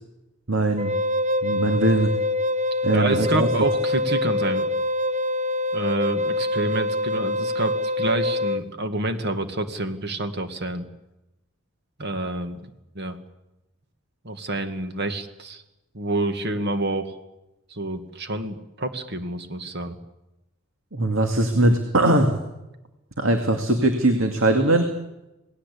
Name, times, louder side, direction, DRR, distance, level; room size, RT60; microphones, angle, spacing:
voice 1, 0.5-0.9 1.4-2.1 2.8-3.5 20.9-22.3 23.2-24.9, right 1 dB, 80° right, 5 dB, 2.5 m, -20 dB
Wind instrument woodwind instrument, 0.8-8.6, left 1 dB, 35° right, 0.8 m, -25 dB
voice 2, 2.9-4.7 5.7-10.8 12.0-12.6 13.0-13.2 14.2-15.6 15.9-17.1 17.7-20.0, right 2 dB, 55° right, 8 dB, 2.0 m, -28 dB
28.0 x 19.5 x 8.5 m, 0.97 s
head